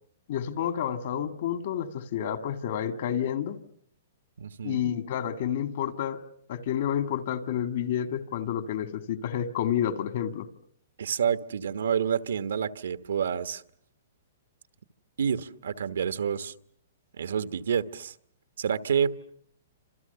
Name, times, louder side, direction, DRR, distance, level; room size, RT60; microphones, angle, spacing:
voice 1, 0.3-3.6 4.6-6.2 6.5-10.5, left 9 dB, 50° left, 1.9 m, -29 dB
voice 2, 4.4-4.9 11.0-13.6 15.2-16.5 17.2-18.1 18.6-19.2, right 7 dB, 85° right, 1.3 m, -28 dB
28.5 x 27.0 x 6.9 m
hypercardioid pair, 165°, 0 cm